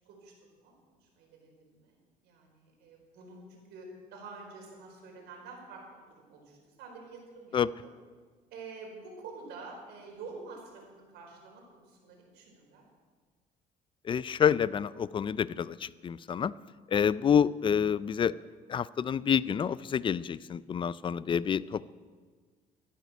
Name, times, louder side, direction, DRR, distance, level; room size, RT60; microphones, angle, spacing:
voice 1, 0.1-2.0 2.2-7.9 8.5-12.8, right 4 dB, 85° right, 0 dB, 4.4 m, -48 dB
voice 2, 14.1-16.5 16.9-18.3 18.7-21.9, left 7 dB, 30° left, 19 dB, 0.4 m, -28 dB
13.0 x 11.5 x 6.1 m, 1.5 s
cardioid pair, 110°, 17 cm